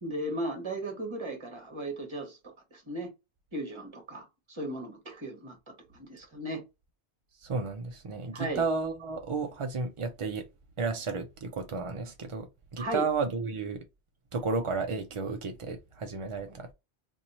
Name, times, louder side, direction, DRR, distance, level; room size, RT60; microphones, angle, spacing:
voice 1, 0.0-2.4 2.7-3.1 3.5-6.6 8.3-8.6 12.8-13.1, right 1 dB, 25° right, 1.1 m, -36 dB
voice 2, 7.4-10.4 10.8-12.5 12.7-13.8 14.3-16.7, right 4 dB, 50° right, 0.4 m, -32 dB
2.9 x 2.6 x 4.0 m
omnidirectional pair, 1.1 m